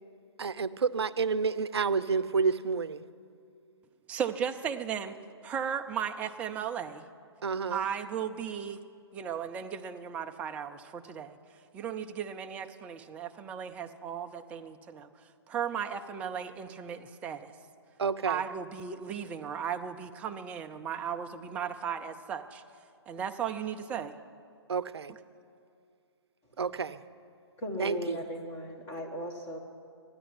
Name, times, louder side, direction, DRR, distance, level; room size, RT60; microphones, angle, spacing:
voice 1, 0.4-3.0 7.4-7.9 18.0-18.4 24.7-25.1 26.6-27.0 27.8-28.2, right 5 dB, 65° right, 16 dB, 0.6 m, -29 dB
voice 2, 4.1-5.2 5.4-7.1 7.7-8.8 9.1-11.4 11.7-15.1 15.5-17.5 18.2-22.6 23.1-24.1, right 8 dB, 10° right, 7 dB, 0.3 m, -36 dB
voice 3, 27.6-29.6, equal, 15° left, 1 dB, 1.7 m, -37 dB
13.0 x 10.5 x 9.8 m, 2.4 s
figure-of-eight pair, 135°, 14 cm